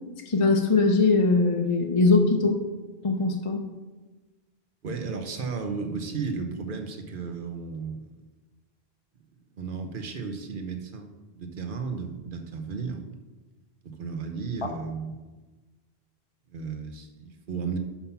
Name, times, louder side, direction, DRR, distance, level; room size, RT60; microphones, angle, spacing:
voice 1, 0.3-2.6 3.0-3.6, left 3 dB, 40° left, 3 dB, 0.6 m, -21 dB
voice 2, 4.8-8.1 9.6-13.1 13.8-15.2 16.5-17.8, right 5 dB, 60° right, 6 dB, 1.0 m, -34 dB
5.8 x 5.6 x 5.6 m, 1.2 s
omnidirectional pair, 1.0 m